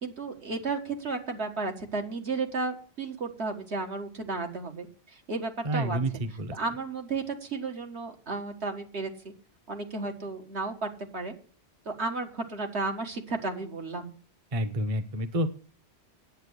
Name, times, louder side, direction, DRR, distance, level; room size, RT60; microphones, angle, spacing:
voice 1, 0.0-6.0 6.5-9.1 9.7-11.3 11.9-14.1, right 3 dB, 75° right, 4 dB, 1.9 m, -33 dB
voice 2, 5.6-6.6 14.5-15.5, right 1 dB, 35° right, 12 dB, 0.8 m, -29 dB
9.4 x 8.4 x 8.1 m, 0.43 s
omnidirectional pair, 1.1 m